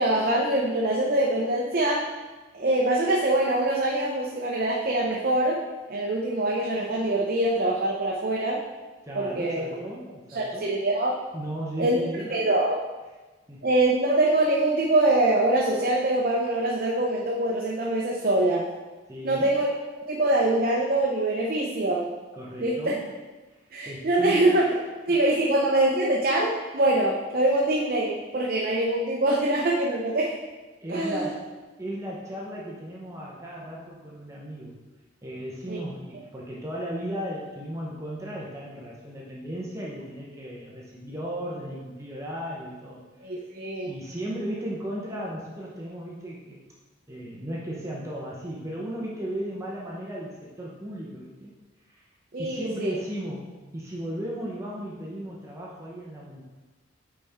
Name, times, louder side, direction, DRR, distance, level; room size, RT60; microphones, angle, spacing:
voice 1, 0.0-2.1 2.5-5.6 5.9-8.6 9.1-9.6 10.3-11.2 11.8-12.0 12.3-12.8 13.6-18.7 19.2-19.7 20.1-22.1 22.6-22.9 23.7-24.7 25.1-30.3 30.9-31.3 35.7-35.8 43.2-43.9 52.3-53.0, right 1 dB, 45° right, -2 dB, 0.7 m, -24 dB
voice 2, 9.0-10.7 11.3-12.3 13.5-13.6 19.1-19.5 22.3-23.1 23.9-24.5 25.1-25.2 30.8-31.5 31.8-34.8 35.2-43.4 43.8-46.6 47.1-51.5 51.9-52.0 52.4-56.4, right 1 dB, 15° right, -5 dB, 0.8 m, -35 dB
8.9 x 4.3 x 3.5 m, 1.2 s
head